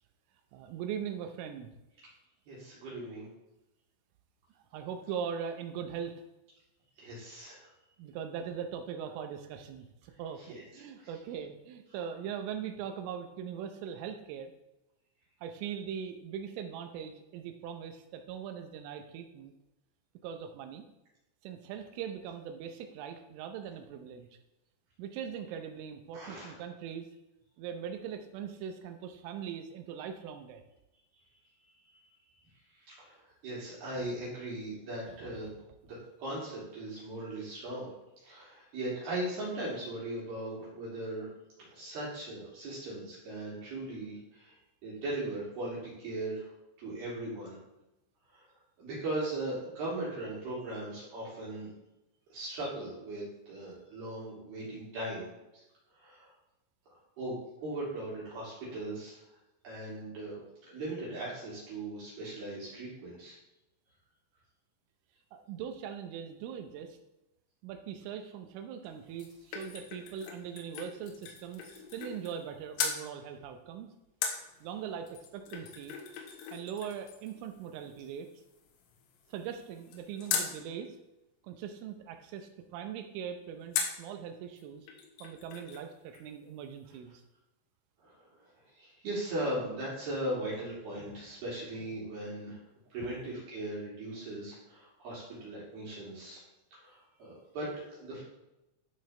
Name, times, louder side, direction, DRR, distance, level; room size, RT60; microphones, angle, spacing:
voice 1, 0.5-1.7 4.7-6.2 8.0-14.5 15.4-19.5 20.2-20.8 21.4-24.3 25.0-27.1 27.6-30.6 35.1-35.4 65.3-67.0 67.6-73.9 74.6-76.0 76.5-78.3 79.3-81.0 81.4-84.8 85.2-87.2, right 8 dB, 80° right, 6 dB, 3.2 m, -41 dB
voice 2, 2.5-3.3 7.0-7.7 10.5-10.6 11.0-11.1 26.1-26.5 32.9-33.2 33.4-35.5 35.8-37.9 38.2-41.3 41.6-44.5 44.8-46.5 46.8-47.6 48.3-48.4 48.8-51.7 52.3-55.3 55.5-55.6 55.9-56.3 57.2-59.2 59.6-63.4 88.0-88.2 88.8-92.6 92.9-96.4 96.8-98.2, right 1 dB, 55° right, -8 dB, 4.2 m, -38 dB
sound 1, 68.8-72.5 72.8-73.0 74.2-80.6 83.7-84.1 84.6-84.7 84.9-85.9 86.1-86.2, left 6 dB, 85° left, 3.8 m, -39 dB
12.0 x 6.5 x 3.3 m, 0.94 s
omnidirectional pair, 5.8 m